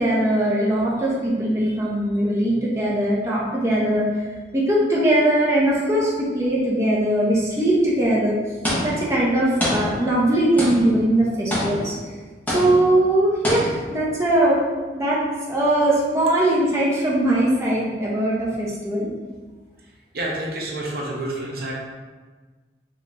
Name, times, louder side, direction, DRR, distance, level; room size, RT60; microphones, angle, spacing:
voice 1, 0.0-4.1 4.5-8.3 8.8-11.9 12.5-14.6 14.9-15.2 15.5-19.1, right 1 dB, 15° right, -7 dB, 0.7 m, -20 dB
sound 1, 8.6-9.2 9.6-10.3 10.6-11.1 11.5-12.1 12.5-13.0 13.4-14.0, equal, 10° left, 0.9 m, -26 dB
voice 2, 20.1-21.7, right 1 dB, 55° right, -3 dB, 0.8 m, -28 dB
5.4 x 2.9 x 2.5 m, 1.4 s
head